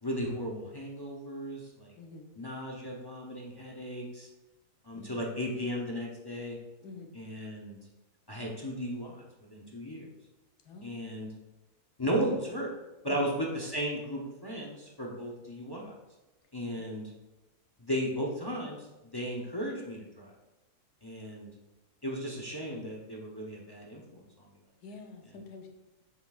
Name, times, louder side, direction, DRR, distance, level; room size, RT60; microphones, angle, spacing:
voice 1, 0.0-1.9 2.4-4.3 4.8-6.6 7.1-7.8 8.3-10.1 10.8-11.3 12.0-12.7 13.0-15.9 16.5-17.1 17.8-18.9 19.1-20.3 21.0-21.5 22.0-24.2, equal, 30° left, -1 dB, 0.5 m, -35 dB
voice 2, 2.0-2.3 4.9-5.3 6.8-7.1 10.6-10.9 13.1-13.3 16.8-16.9 24.8-25.7, left 4 dB, 80° left, 3 dB, 1.4 m, -47 dB
7.6 x 6.0 x 2.4 m, 1.0 s
omnidirectional pair, 1.7 m